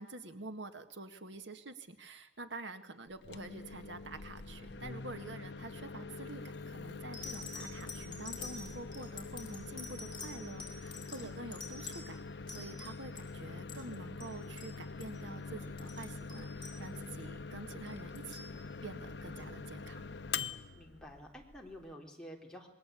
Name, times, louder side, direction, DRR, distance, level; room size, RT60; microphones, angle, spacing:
voice 1, 0.0-12.2 12.5-18.5 18.8-20.0, right 2 dB, 85° right, 8 dB, 1.8 m, -47 dB
Microwave oven, 3.1-21.9, left 4 dB, 70° left, 0.9 m, -44 dB
sound 1, 6.3-6.6 7.1-13.3 13.6-13.9 14.2-14.3 14.6-14.7 15.0-15.2 15.6-17.2 17.9-18.5 19.4-19.5, left 4 dB, 25° left, 6.0 m, -47 dB
voice 2, 20.7-22.7, equal, 5° left, -1 dB, 3.8 m, -50 dB
27.0 x 21.5 x 8.4 m, 0.89 s
head